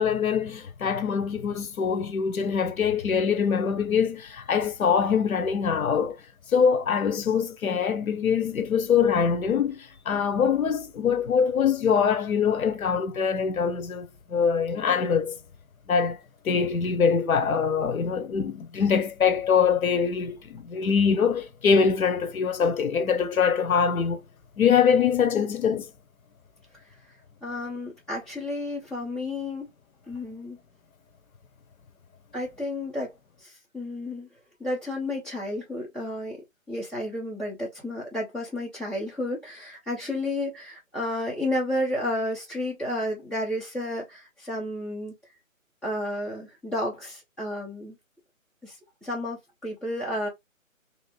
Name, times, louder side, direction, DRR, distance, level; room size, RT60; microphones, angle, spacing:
voice 1, 0.0-6.2 6.5-15.4 15.9-16.2 16.4-24.2 24.6-25.9, left 6 dB, 80° left, 0.8 m, -23 dB
voice 2, 27.4-29.7 30.1-30.6 32.3-33.1 33.4-34.3 34.6-36.4 36.7-45.1 45.8-48.0 48.6-48.8 49.0-50.3, left 1 dB, 5° left, 0.8 m, -31 dB
3.0 x 2.8 x 3.1 m
hypercardioid pair, 155°, 41 cm